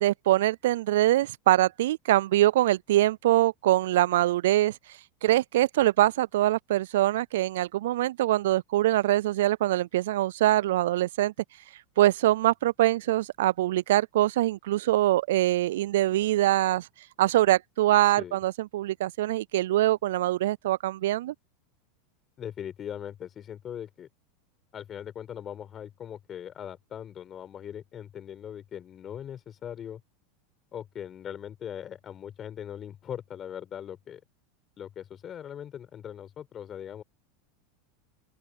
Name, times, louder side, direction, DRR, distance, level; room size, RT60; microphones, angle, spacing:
voice 1, 0.0-4.8 5.2-11.3 12.0-16.9 17.2-21.3, right 15 dB, 75° right, 0.3 m, -23 dB
voice 2, 18.0-18.4 22.4-24.1 24.7-30.0 30.7-34.2 34.8-37.0, left 9 dB, 35° left, 4.6 m, -40 dB
open air
hypercardioid pair, 100°, 0 cm